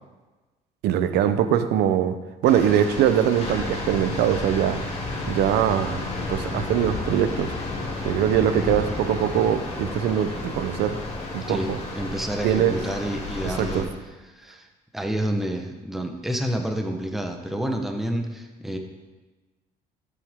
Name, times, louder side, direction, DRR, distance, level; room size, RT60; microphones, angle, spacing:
voice 1, 0.8-2.1 2.4-4.8 5.2-6.0 6.3-7.5 8.0-11.0 11.3-11.8 12.4-12.8 13.4-13.9, right 9 dB, 80° right, 10 dB, 0.8 m, -22 dB
sound 1, 2.4-13.8, left 2 dB, 35° left, 2.7 m, -32 dB
voice 2, 11.5-13.9 14.3-14.7 14.9-18.8, right 1 dB, ahead, 3 dB, 1.1 m, -29 dB
14.0 x 8.1 x 3.7 m, 1.2 s
cardioid pair, 110°, 17 cm